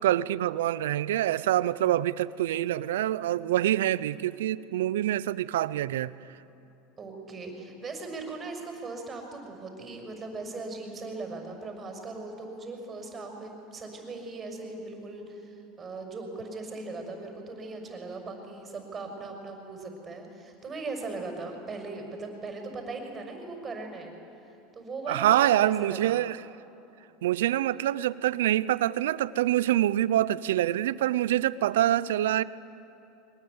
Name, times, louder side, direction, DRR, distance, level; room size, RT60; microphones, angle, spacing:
voice 1, 0.0-6.1 25.1-26.4 27.2-32.4, right 13 dB, 85° right, 0.6 m, -25 dB
voice 2, 7.0-24.1 24.7-26.2, right 3 dB, 25° right, 5.9 m, -39 dB
23.0 x 20.0 x 9.6 m
supercardioid pair, 110°, 0 cm